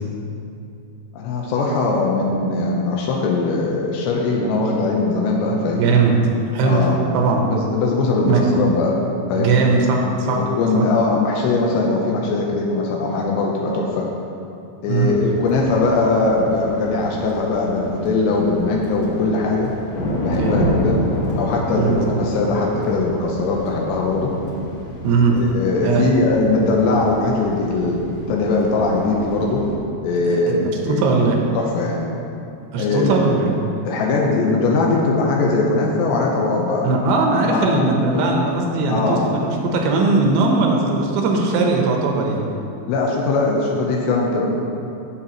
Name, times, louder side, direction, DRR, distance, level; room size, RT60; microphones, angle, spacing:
voice 1, 1.1-6.0 6.6-7.0 7.4-8.9 9.3-9.6 10.2-14.1 14.8-19.7 20.2-21.0 21.4-24.3 25.3-29.6 30.0-31.0 31.5-32.1 32.8-33.2 33.9-36.9 37.5-37.8 38.1-38.3 38.9-39.3 42.9-44.5, left 3 dB, 85° left, -2 dB, 3.0 m, -20 dB
voice 2, 5.8-6.2 6.5-6.9 7.1-7.5 8.3-8.6 9.4-10.4 10.7-10.9 14.9-15.1 20.3-20.6 21.8-22.0 25.0-25.4 25.8-26.0 30.3-31.4 32.7-33.5 36.8-42.5, right 3 dB, 80° right, 0 dB, 3.0 m, -19 dB
sound 1, 15.0-29.7, equal, 60° left, 1.6 m, -29 dB
16.0 x 6.8 x 3.0 m, 2.6 s
omnidirectional pair, 5.1 m